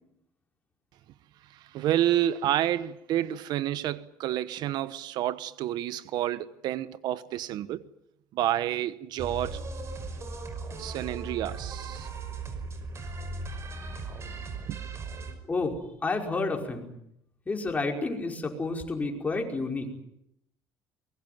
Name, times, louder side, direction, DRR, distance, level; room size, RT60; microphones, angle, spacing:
voice 1, 1.5-7.8 8.3-9.6 10.8-12.1 14.7-14.8, right 12 dB, 65° right, 1.1 m, -29 dB
sound 1, 9.2-15.3, right 3 dB, 35° right, 5.4 m, -37 dB
voice 2, 15.5-16.9 17.5-19.9, left 3 dB, 20° left, 5.3 m, -30 dB
24.0 x 22.0 x 9.4 m
cardioid pair, 115°, 8 cm